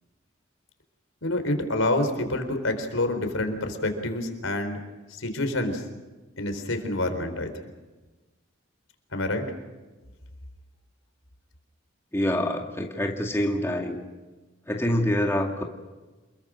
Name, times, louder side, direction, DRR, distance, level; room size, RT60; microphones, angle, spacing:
voice 1, 1.2-4.8 5.1-5.8 6.4-7.5 9.1-9.5, left 1 dB, 90° left, 7 dB, 4.2 m, -27 dB
voice 2, 12.1-14.0 14.7-15.6, left 1 dB, 15° left, 1 dB, 2.3 m, -26 dB
28.0 x 22.0 x 6.5 m, 1.2 s
head